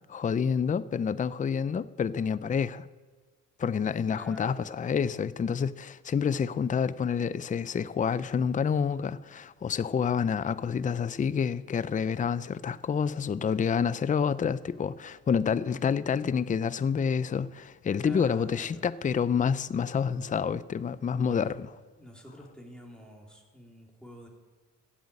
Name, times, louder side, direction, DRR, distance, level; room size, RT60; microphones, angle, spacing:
voice 1, 0.1-2.9 3.6-21.7, left 6 dB, 25° left, 0.5 m, -28 dB
voice 2, 4.1-4.7 18.0-18.9 21.2-21.6 22.0-24.3, equal, 5° left, 3.6 m, -48 dB
15.0 x 8.2 x 8.6 m
cardioid pair, 90°, 30 cm